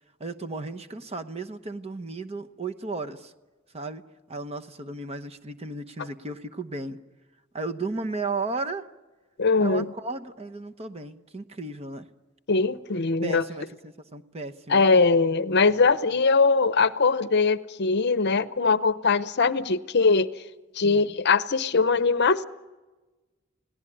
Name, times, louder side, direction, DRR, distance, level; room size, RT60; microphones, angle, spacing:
voice 1, 0.2-3.3 3.7-7.0 7.5-8.9 9.6-12.1 13.2-14.8 20.8-21.2, right 3 dB, 30° right, 1.0 m, -34 dB
voice 2, 9.4-9.9 12.5-13.4 14.7-20.3 20.8-22.4, left 4 dB, 55° left, 0.7 m, -21 dB
29.5 x 18.0 x 9.9 m
head